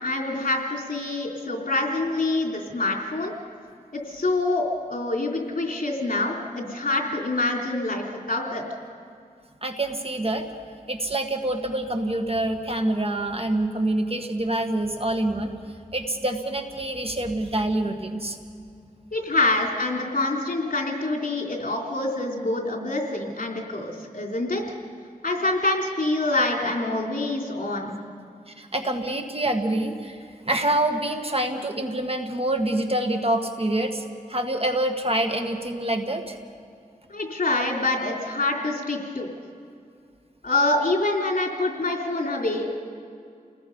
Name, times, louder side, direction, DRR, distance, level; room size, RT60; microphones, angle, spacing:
voice 1, 0.0-3.3 3.9-8.6 19.1-24.6 25.2-28.0 37.1-39.3 40.4-42.7, left 2 dB, 65° left, 0 dB, 3.4 m, -26 dB
voice 2, 9.6-10.5 10.9-15.5 15.9-18.4 28.5-30.2 30.5-34.0 34.3-36.4, right 1 dB, 40° right, 4 dB, 1.8 m, -26 dB
29.5 x 19.5 x 5.5 m, 2.4 s
wide cardioid pair, 65°, 15 cm